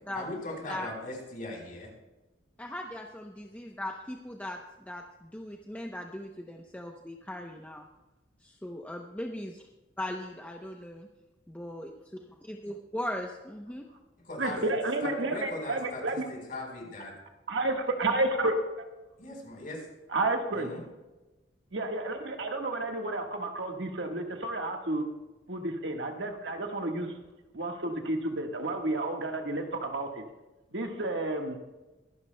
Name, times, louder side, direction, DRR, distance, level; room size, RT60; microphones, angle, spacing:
voice 1, 0.1-1.9 14.2-14.7 15.0-17.1 19.2-19.8 20.5-20.8, left 2 dB, 50° left, 0 dB, 4.3 m, -39 dB
voice 2, 2.6-7.9 8.4-9.6 10.0-11.1 11.5-11.9 12.4-13.9, left 1 dB, 10° left, 1 dB, 0.7 m, -39 dB
voice 3, 14.4-16.3 17.5-18.5 20.1-20.7 21.7-25.1 25.5-27.1 27.5-30.2 30.7-31.6, right 2 dB, 70° right, 3 dB, 1.5 m, -31 dB
24.0 x 11.5 x 2.2 m, 1.1 s
head